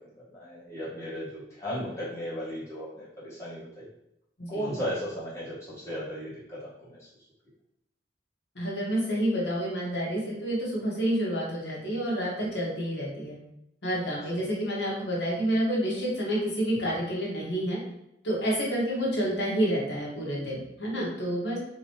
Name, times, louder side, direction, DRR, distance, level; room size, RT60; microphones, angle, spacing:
voice 1, 0.3-3.9 4.5-7.1 14.3-14.4, equal, 15° left, -10 dB, 1.5 m, -36 dB
voice 2, 8.5-13.4 13.8-17.8 18.2-21.6, equal, 90° left, -5 dB, 1.3 m, -29 dB
3.7 x 3.0 x 3.0 m, 0.82 s
head